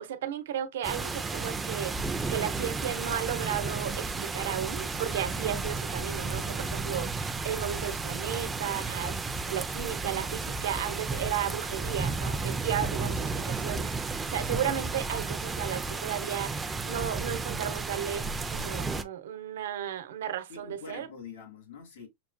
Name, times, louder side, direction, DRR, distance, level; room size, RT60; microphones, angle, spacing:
voice 1, 0.0-2.0 2.3-9.2 9.5-21.1, right 10 dB, 85° right, 0.8 m, -34 dB
sound 1, 0.8-19.0, right 3 dB, 10° right, 0.3 m, -33 dB
voice 2, 5.1-5.5 12.7-13.2 20.5-22.1, left 6 dB, 85° left, 1.8 m, -46 dB
5.9 x 2.2 x 2.6 m
supercardioid pair, 160°, 0 cm